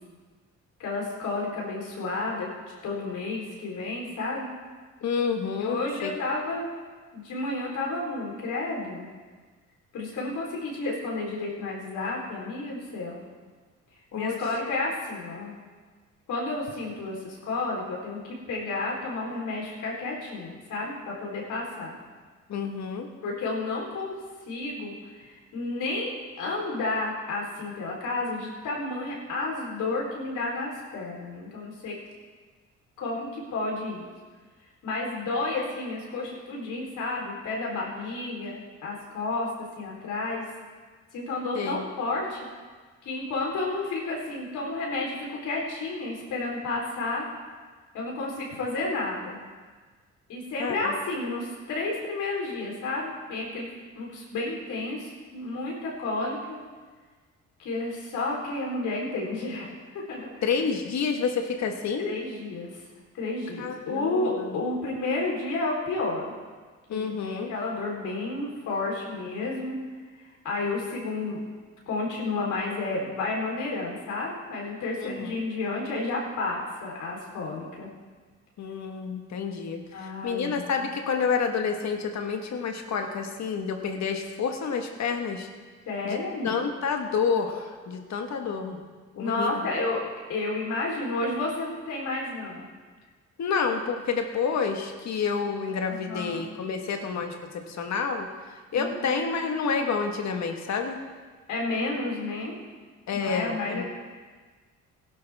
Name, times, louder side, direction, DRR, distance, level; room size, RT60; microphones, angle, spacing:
voice 1, 0.8-2.5 2.8-4.5 5.6-6.7 7.1-9.1 9.9-13.2 14.1-15.5 16.3-22.0 23.2-24.2 24.5-32.0 33.0-34.1 34.8-39.5 39.8-40.4 41.1-42.4 43.0-47.3 47.9-49.4 50.3-56.6 57.6-60.3 62.0-62.8 63.1-66.3 66.9-69.8 70.1-71.4 71.9-77.9 79.9-80.9 85.9-86.5 89.2-90.0 90.3-92.6 95.9-96.4 98.7-99.2 101.5-102.6 103.1-103.9, left 2 dB, 80° left, -3 dB, 3.8 m, -31 dB
voice 2, 5.0-6.1 14.1-14.4 22.5-23.1 41.5-41.8 50.6-50.9 60.4-62.1 63.6-64.5 66.9-67.5 75.0-75.3 78.6-85.5 86.0-88.8 89.1-89.8 93.4-101.0 103.1-103.8, left 5 dB, 65° left, 4 dB, 1.6 m, -29 dB
16.5 x 11.5 x 3.6 m, 1.4 s
cardioid pair, 90°, 30 cm